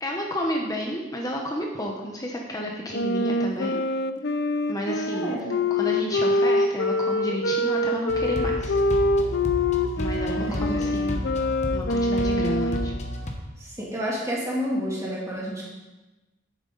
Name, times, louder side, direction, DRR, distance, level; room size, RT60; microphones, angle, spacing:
voice 1, 0.0-3.8 4.7-5.4 5.7-8.8 10.0-11.2 11.7-12.9, equal, 20° left, 0 dB, 0.9 m, -31 dB
Wind instrument woodwind instrument, 2.9-13.0, left 1 dB, 60° left, 0.5 m, -25 dB
voice 2, 5.1-5.5 10.5-10.9 13.6-15.7, equal, 15° right, -5 dB, 2.8 m, -30 dB
sound 1, 8.1-13.3, equal, 40° left, 1.2 m, -32 dB
10.5 x 8.7 x 4.0 m, 1.1 s
head